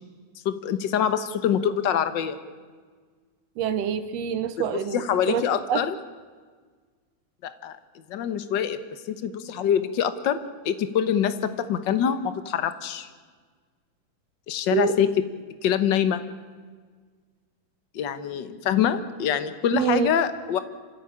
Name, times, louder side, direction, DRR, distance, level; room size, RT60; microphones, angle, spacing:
voice 1, 0.4-2.4 4.6-4.7 4.9-6.0 7.4-7.7 8.1-8.8 9.1-10.4 10.6-13.1 14.5-15.1 15.6-16.2 17.9-20.6, left 9 dB, 65° left, 11 dB, 1.1 m, -25 dB
voice 2, 3.6-5.8 14.7-14.9 19.7-20.1, right 8 dB, 65° right, 11 dB, 1.8 m, -26 dB
27.0 x 15.5 x 8.8 m, 1.5 s
omnidirectional pair, 3.6 m